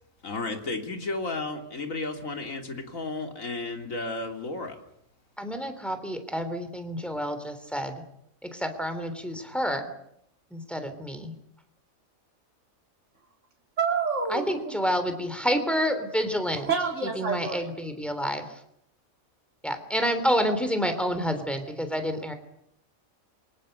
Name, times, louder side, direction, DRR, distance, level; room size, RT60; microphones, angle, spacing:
voice 1, 0.2-4.7, left 3 dB, 70° left, 4 dB, 3.4 m, -33 dB
voice 2, 5.4-8.0 8.4-9.8 10.5-11.3 14.3-16.7 17.2-18.4 19.6-22.3, equal, ahead, 7 dB, 3.4 m, -28 dB
voice 3, 13.8-14.7 16.6-17.7, right 5 dB, 60° right, 0 dB, 3.2 m, -28 dB
27.5 x 24.5 x 6.8 m, 0.76 s
omnidirectional pair, 1.4 m